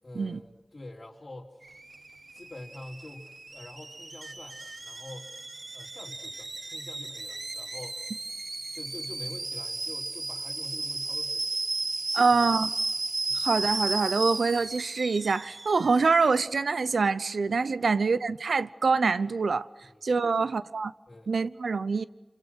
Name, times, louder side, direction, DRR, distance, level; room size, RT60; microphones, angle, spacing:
voice 1, 0.0-1.6 2.3-5.3 5.7-8.0 8.7-11.5 12.1-12.5 13.3-13.5 17.8-17.9 19.8-20.5 21.1-21.3, left 2 dB, 45° left, 3.8 m, -46 dB
Alarm / Boiling, 1.6-16.5, right 2 dB, 50° right, 0.9 m, -35 dB
voice 2, 12.1-12.7 13.4-19.7 20.0-20.9 21.3-22.0, right 4 dB, 90° right, 0.8 m, -25 dB
30.0 x 25.5 x 6.3 m
wide cardioid pair, 50°, 0 cm